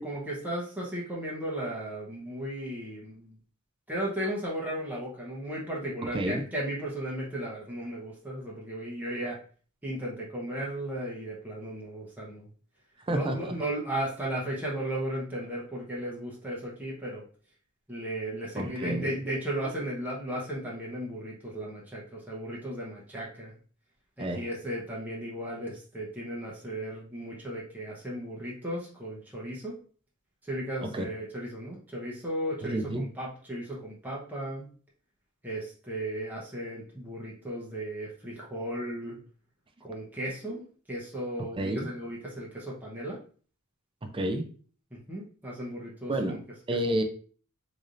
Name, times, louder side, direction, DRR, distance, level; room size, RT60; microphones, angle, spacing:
voice 1, 0.0-3.4 3.9-9.4 9.8-12.5 13.1-17.2 17.9-23.5 24.2-29.8 30.4-34.7 35.4-39.2 39.8-43.2 44.9-46.4, right 1 dB, 10° right, 0.9 m, -35 dB
voice 2, 13.1-13.4 18.6-19.1 24.2-24.4 30.9-31.0 32.6-33.0 41.6-41.9 44.0-44.4 46.1-47.0, right 1 dB, 25° right, 0.5 m, -30 dB
4.0 x 3.3 x 2.5 m
head